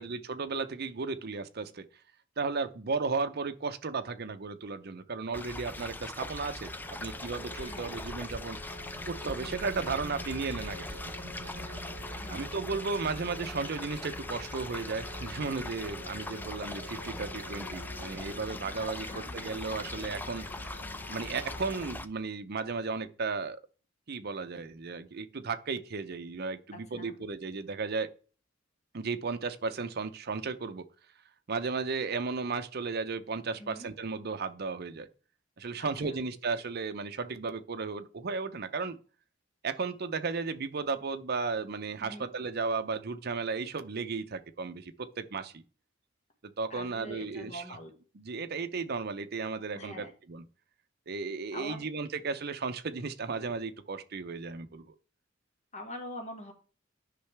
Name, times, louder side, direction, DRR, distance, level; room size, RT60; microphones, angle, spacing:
voice 1, 0.0-1.8 2.4-8.6 9.0-10.9 12.3-20.5 21.1-23.6 24.1-28.1 28.9-30.9 31.5-35.1 35.6-39.0 39.6-45.6 46.6-47.6 48.1-50.4 51.1-54.9, right 4 dB, 55° right, 0.7 m, -34 dB
sound 1, 5.3-22.1, left 2 dB, 10° left, 0.4 m, -41 dB
sound 2, 6.7-21.9, left 1 dB, 55° left, 1.0 m, -49 dB
voice 2, 7.6-7.9 12.1-12.4 18.8-19.3 26.7-27.2 33.6-33.9 35.8-36.2 42.0-42.3 46.7-47.9 49.7-50.1 51.5-51.9 55.7-56.5, left 1 dB, 35° left, 1.7 m, -44 dB
sound 3, 8.6-18.5, right 1 dB, 75° right, 1.0 m, -49 dB
10.0 x 5.6 x 3.4 m
head